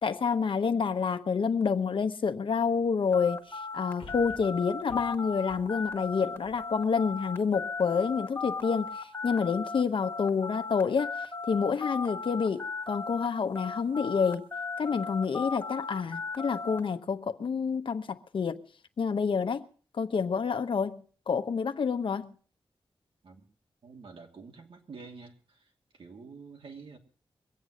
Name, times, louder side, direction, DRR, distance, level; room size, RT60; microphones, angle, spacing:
voice 1, 0.0-11.2 11.5-14.5 14.8-18.6 19.0-19.6 19.9-22.3, left 5 dB, 70° left, 1.0 m, -28 dB
sound 1, 3.1-13.3 13.6-16.8, left 4 dB, 25° left, 1.6 m, -36 dB
sound 2, 4.0-7.3 7.8-7.9, left 5 dB, 90° left, 1.3 m, -52 dB
voice 2, 23.8-27.0, right 4 dB, 75° right, 2.7 m, -48 dB
22.5 x 8.3 x 6.3 m
wide cardioid pair, 95°, 9 cm